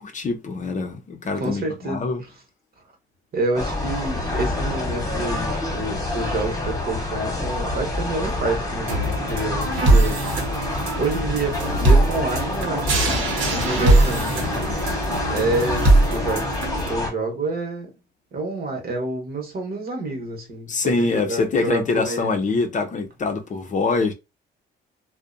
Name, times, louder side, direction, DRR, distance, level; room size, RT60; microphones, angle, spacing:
voice 1, 0.0-2.2 20.7-24.1, left 4 dB, 40° left, 0.5 m, -24 dB
voice 2, 1.4-2.0 3.3-10.2 11.0-14.6 15.2-16.5 16.8-17.9 18.3-22.4, right 2 dB, 50° right, 1.0 m, -28 dB
sound 1, 3.5-17.1, left 2 dB, 20° left, 1.0 m, -27 dB
sound 2, 8.9-16.9, right 2 dB, 85° right, 0.8 m, -21 dB
2.5 x 2.1 x 2.5 m
cardioid pair, 90°, 20 cm